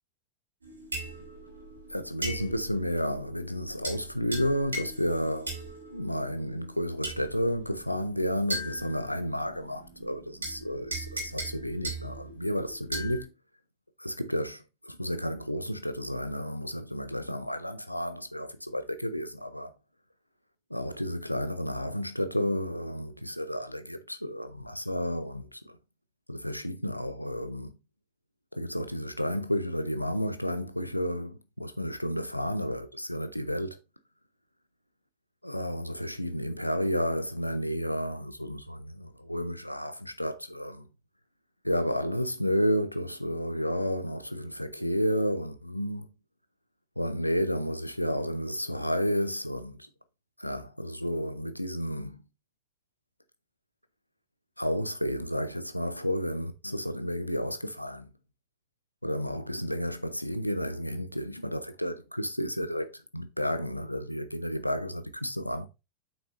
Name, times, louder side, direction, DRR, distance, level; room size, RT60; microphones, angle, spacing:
sound 1, 0.6-13.2, right 2 dB, 75° right, 3.0 m, -40 dB
voice 1, 1.9-5.5 5.9-13.3 14.0-19.7 20.7-25.8 26.3-27.7 28.5-33.8 35.4-40.9 41.6-46.1 47.0-49.9 50.4-52.2 54.6-58.1 59.0-65.7, equal, 90° left, 0.6 m, -31 dB
8.2 x 6.1 x 2.5 m
figure-of-eight pair, 90°, 0 cm